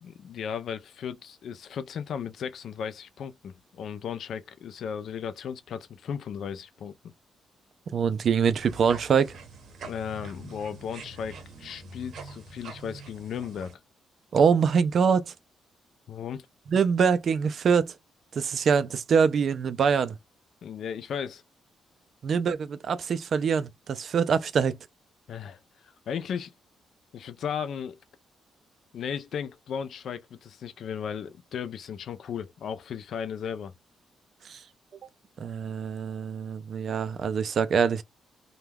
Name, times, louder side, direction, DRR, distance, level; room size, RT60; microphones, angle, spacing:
voice 1, 0.0-7.1 9.8-13.8 16.1-16.5 20.6-21.4 25.3-26.5 27.1-28.0 28.9-33.7, left 7 dB, 55° left, 0.3 m, -36 dB
voice 2, 7.9-9.4 14.3-15.3 16.7-17.9 18.3-20.2 22.2-24.8 34.4-34.6 35.4-38.0, right 6 dB, 45° right, 0.3 m, -24 dB
sound 1, 8.6-13.7, right 3 dB, 60° right, 0.7 m, -44 dB
2.2 x 2.2 x 3.2 m
cardioid pair, 170°, 0 cm